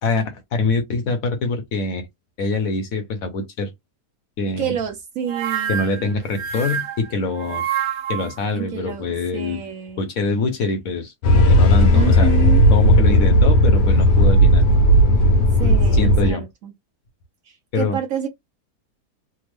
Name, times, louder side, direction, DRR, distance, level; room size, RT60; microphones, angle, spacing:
voice 1, 0.0-2.0 2.4-3.7 4.4-4.7 5.7-7.6 8.1-9.6 10.0-12.3 12.7-14.6 15.6-16.4 17.7-18.0, left 3 dB, 65° left, 1.0 m, -24 dB
voice 2, 4.6-6.1 8.5-9.1 9.3-10.1 11.9-12.6 15.6-16.7 17.4-18.3, right 8 dB, 65° right, 1.0 m, -28 dB
sound 1, 5.3-8.4, right 8 dB, 85° right, 1.3 m, -27 dB
sound 2, 11.2-16.3, equal, 90° left, 1.3 m, -14 dB
3.4 x 2.1 x 3.2 m
omnidirectional pair, 1.8 m